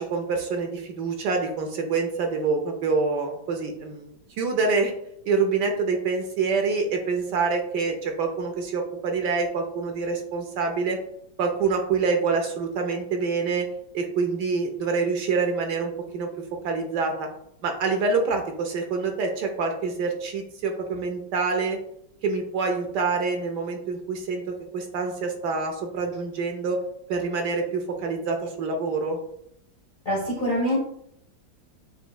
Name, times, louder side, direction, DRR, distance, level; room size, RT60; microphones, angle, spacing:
voice 1, 0.0-4.9 5.3-11.0 11.4-13.7 13.9-16.3 16.6-17.3 17.6-21.8 22.2-24.4 24.7-26.8 27.1-29.2, right 4 dB, 70° right, 3 dB, 1.2 m, -26 dB
voice 2, 30.0-30.8, equal, 50° left, -2 dB, 0.6 m, -24 dB
6.8 x 3.0 x 2.2 m, 0.73 s
omnidirectional pair, 2.1 m